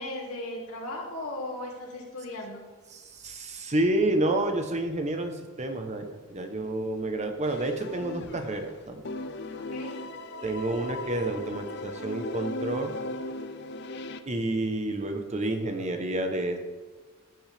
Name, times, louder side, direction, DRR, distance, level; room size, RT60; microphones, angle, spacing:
voice 1, 0.0-2.6 9.7-9.9, left 1 dB, 90° left, -2 dB, 2.8 m, -36 dB
voice 2, 2.9-9.0 10.4-12.9 14.3-16.6, right 2 dB, 30° right, 5 dB, 0.9 m, -29 dB
sound 1, 7.4-8.7 9.0-14.2, left 2 dB, 50° left, 0.5 m, -37 dB
15.0 x 7.8 x 3.5 m, 1.3 s
head